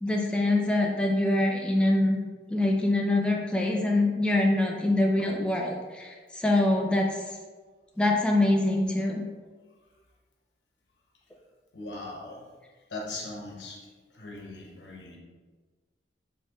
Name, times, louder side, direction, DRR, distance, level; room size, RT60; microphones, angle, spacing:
voice 1, 0.0-2.2 2.5-7.2 8.0-9.2, left 2 dB, 5° left, 0 dB, 0.4 m, -24 dB
voice 2, 11.7-12.4 12.9-13.9 14.1-15.2, left 2 dB, 85° left, -2 dB, 1.0 m, -39 dB
4.2 x 3.7 x 2.9 m, 1.4 s
head